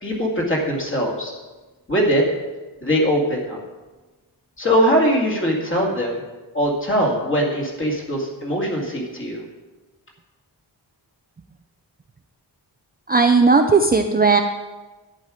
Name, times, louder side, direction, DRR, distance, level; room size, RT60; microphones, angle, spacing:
voice 1, 0.0-1.3 1.9-2.2 2.8-3.6 4.6-6.2 6.5-9.4, equal, 30° left, -2 dB, 2.2 m, -21 dB
voice 2, 13.1-14.4, right 4 dB, 25° right, 5 dB, 0.4 m, -15 dB
11.0 x 9.0 x 4.9 m, 1.2 s
wide cardioid pair, 175°, 42 cm